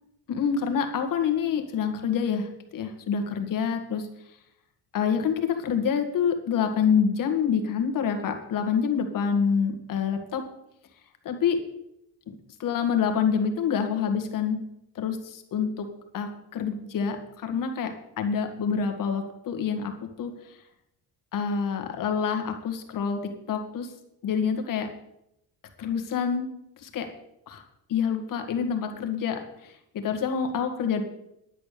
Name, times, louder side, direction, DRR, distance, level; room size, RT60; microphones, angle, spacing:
voice 1, 0.3-4.1 4.9-10.4 11.2-11.6 12.3-12.4 12.6-14.6 15.0-15.9 16.1-20.3 21.3-23.9 24.2-24.9 25.8-26.5 26.8-27.1 27.5-27.6 27.9-31.0, left 7 dB, 50° left, 6 dB, 1.9 m, -27 dB
10.5 x 8.5 x 6.8 m, 0.80 s
cardioid pair, 155°, 40 cm